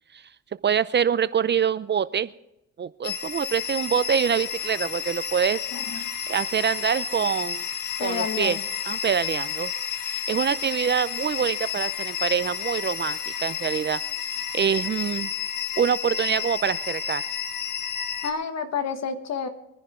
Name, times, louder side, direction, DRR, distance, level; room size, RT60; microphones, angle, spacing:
voice 1, 0.6-2.3 2.8-5.6 5.9-7.7 8.0-8.6 8.8-9.7 10.1-14.0 14.5-15.3 15.8-17.2, right 7 dB, 35° right, 15 dB, 0.5 m, -25 dB
sound 1, 3.0-18.3, left 8 dB, 80° left, 1.5 m, -31 dB
voice 2, 5.7-6.1 8.0-8.6 18.2-19.5, left 6 dB, 60° left, 8 dB, 1.7 m, -30 dB
23.5 x 10.5 x 3.8 m, 0.89 s
cardioid pair, 90°, 30 cm